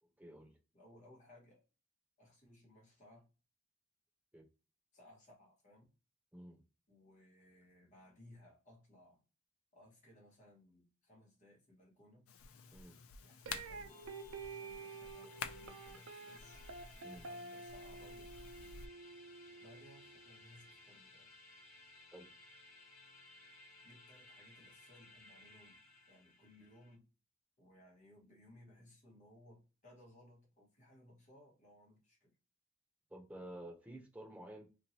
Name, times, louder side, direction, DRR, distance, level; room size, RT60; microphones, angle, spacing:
voice 1, 0.2-0.6 4.3-4.5 6.3-6.6 12.7-13.0 17.0-17.2 22.1-22.3 33.1-34.7, right 1 dB, 5° right, 0.6 m, -51 dB
voice 2, 0.7-1.6 2.2-3.3 4.9-5.9 6.9-9.3 9.7-12.3 13.2-14.0 14.4-16.7 17.2-18.3 19.6-21.3 23.8-25.8 26.1-27.1 27.6-32.3, left 1 dB, 35° left, 1.3 m, -62 dB
sound 1, 12.3-18.9, left 6 dB, 85° left, 0.4 m, -51 dB
sound 2, 13.5-20.5, right 4 dB, 80° right, 0.5 m, -50 dB
sound 3, 13.9-27.0, left 2 dB, 65° left, 1.2 m, -60 dB
3.0 x 2.6 x 2.7 m
head